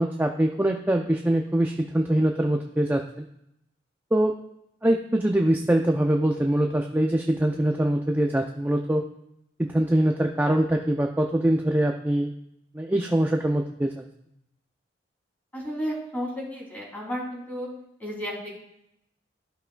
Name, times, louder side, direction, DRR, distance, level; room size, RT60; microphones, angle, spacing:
voice 1, 0.0-3.3 4.1-4.3 4.8-9.0 9.6-12.3 12.7-13.9, right 1 dB, 10° right, 3 dB, 0.4 m, -23 dB
voice 2, 15.5-17.7 18.0-18.5, equal, 10° left, -5 dB, 2.9 m, -32 dB
14.5 x 5.6 x 2.2 m, 0.78 s
head